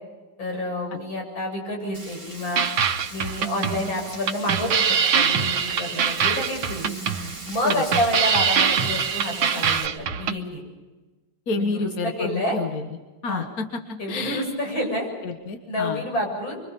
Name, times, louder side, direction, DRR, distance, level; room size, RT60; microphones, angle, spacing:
voice 1, 0.4-2.7 3.1-4.8 5.1-6.9 7.4-10.6 11.5-11.9 12.2-12.6 13.3-13.5 14.0-15.1 15.6-16.6, left 1 dB, 80° left, 0 dB, 8.2 m, -28 dB
Frying (food), 1.9-9.9, right 2 dB, 15° right, 2.6 m, -40 dB
sound 1, 2.6-10.4, right 7 dB, 85° right, 1.8 m, -23 dB
voice 2, 11.5-12.9 13.2-13.8 14.1-14.4 15.2-16.0, left 3 dB, 50° left, 5 dB, 1.9 m, -29 dB
25.5 x 24.5 x 5.4 m, 1.2 s
omnidirectional pair, 2.1 m